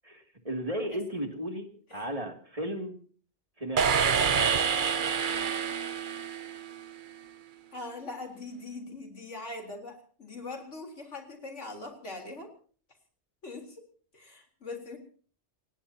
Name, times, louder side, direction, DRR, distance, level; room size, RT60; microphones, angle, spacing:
voice 1, 0.0-3.0 3.6-4.0, equal, 30° right, 4 dB, 2.9 m, -35 dB
sound 1, 3.8-6.9, right 6 dB, 45° right, 1.0 m, -27 dB
voice 2, 7.7-12.5 13.4-13.8 14.1-15.0, left 2 dB, 85° left, 4 dB, 4.1 m, -41 dB
28.5 x 17.5 x 2.9 m, 0.43 s
omnidirectional pair, 1.2 m